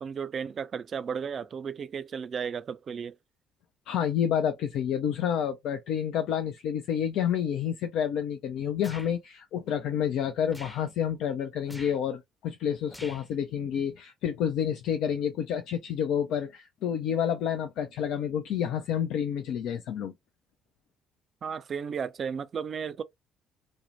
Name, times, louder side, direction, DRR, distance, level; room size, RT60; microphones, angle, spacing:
voice 1, 0.0-3.2 21.4-23.0, right 6 dB, 45° right, 0.4 m, -34 dB
voice 2, 3.9-20.1, left 9 dB, 65° left, 0.3 m, -29 dB
sound 1, 8.8-9.1 10.5-10.9 11.6-12.0 12.9-13.3, equal, 5° left, 0.6 m, -45 dB
2.6 x 2.1 x 2.7 m
hypercardioid pair, 50°, 0 cm